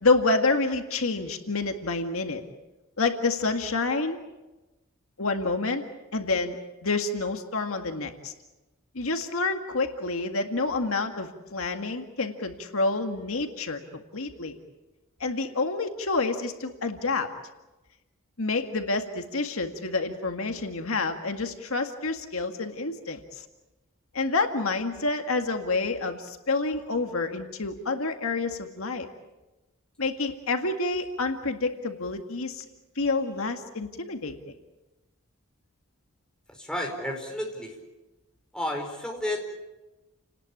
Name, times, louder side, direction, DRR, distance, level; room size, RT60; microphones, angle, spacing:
voice 1, 0.0-2.4 3.0-4.2 5.2-5.8 6.1-6.6 6.8-8.3 8.9-14.6 15.2-17.3 18.4-23.5 24.1-29.1 30.0-32.6 33.0-34.5, left 3 dB, 70° left, 6 dB, 1.9 m, -28 dB
voice 2, 36.5-37.8 38.5-39.5, left 1 dB, 5° left, 1 dB, 4.8 m, -32 dB
30.0 x 19.0 x 8.7 m, 1.1 s
head